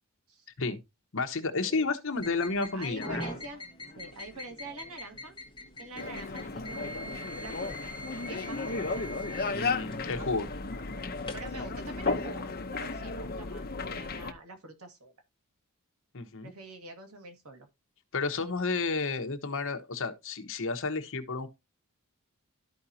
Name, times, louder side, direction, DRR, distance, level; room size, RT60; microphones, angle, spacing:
voice 1, 1.1-3.2 9.5-10.5 16.1-16.5 18.1-21.5, left 3 dB, 65° left, 1.1 m, -31 dB
sound 1, 2.2-11.5, equal, 20° left, 1.6 m, -44 dB
voice 2, 2.7-3.6 4.0-5.3 5.8-7.9 8.2-9.0 10.9-15.1 16.4-17.7, right 2 dB, 80° right, 1.9 m, -46 dB
sound 2, 6.0-14.3, left 3 dB, 45° left, 0.8 m, -34 dB
13.0 x 5.0 x 2.8 m
head